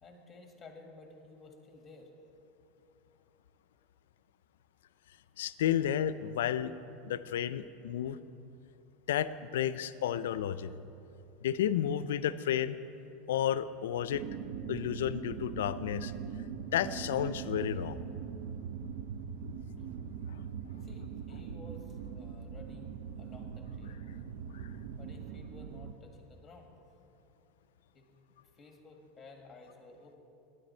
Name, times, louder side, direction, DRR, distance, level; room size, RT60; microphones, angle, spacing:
voice 1, 0.0-2.1 3.2-3.3 19.8-19.9 20.8-24.0 25.0-26.7 27.9-28.0 28.5-30.2, left 3 dB, 15° left, 3 dB, 1.7 m, -54 dB
voice 2, 5.4-6.7 7.0-8.2 9.1-10.7 11.4-12.8 13.3-14.2 14.7-16.1 16.7-18.0 24.5-24.7, left 10 dB, 90° left, 15 dB, 0.4 m, -32 dB
sound 1, 14.1-25.9, right 7 dB, 70° right, 0.5 m, -41 dB
12.0 x 10.0 x 4.3 m, 2.7 s
supercardioid pair, 125°, 0 cm